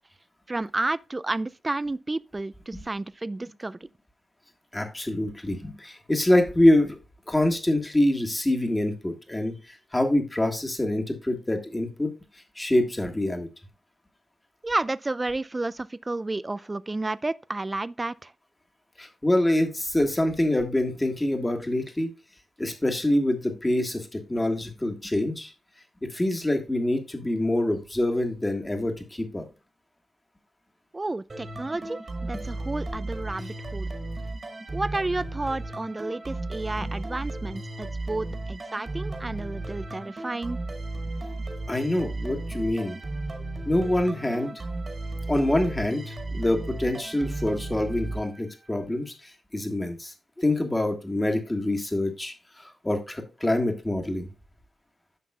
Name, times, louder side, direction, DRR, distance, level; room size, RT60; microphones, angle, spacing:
voice 1, 0.5-3.9 14.6-18.3 30.9-33.9 34.7-40.6, right 2 dB, 25° right, 0.4 m, -31 dB
voice 2, 4.7-7.0 7.3-12.1 12.5-13.5 19.0-22.1 22.6-25.5 26.0-29.4 36.8-36.9 41.7-43.0 43.6-44.6 45.3-54.3, left 1 dB, 20° left, 1.5 m, -25 dB
sound 1, 31.3-48.8, right 2 dB, 40° right, 1.8 m, -35 dB
10.0 x 5.9 x 2.3 m
cardioid pair, 75°, 0 cm